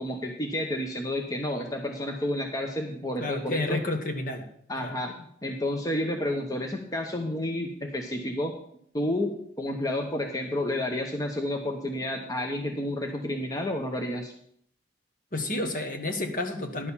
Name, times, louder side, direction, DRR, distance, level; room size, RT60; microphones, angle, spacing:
voice 1, 0.0-3.8 4.7-8.5 8.9-14.3, left 1 dB, 20° left, 2 dB, 0.9 m, -30 dB
voice 2, 3.2-4.4 4.8-4.9 15.3-16.9, left 2 dB, 50° left, 5 dB, 1.5 m, -30 dB
11.0 x 6.5 x 7.2 m, 0.66 s
head